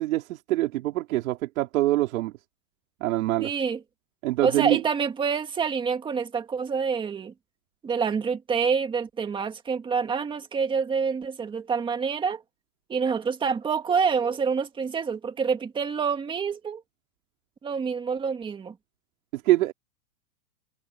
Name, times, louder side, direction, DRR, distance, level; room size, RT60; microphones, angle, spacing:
voice 1, 0.0-2.3 3.0-3.5 4.2-4.8 19.3-19.7, right 16 dB, 60° right, 4.9 m, -24 dB
voice 2, 3.4-3.8 4.4-7.3 7.8-12.4 12.9-16.8 17.6-18.8, right 6 dB, 10° right, 1.9 m, -27 dB
supercardioid pair, 165°, 47 cm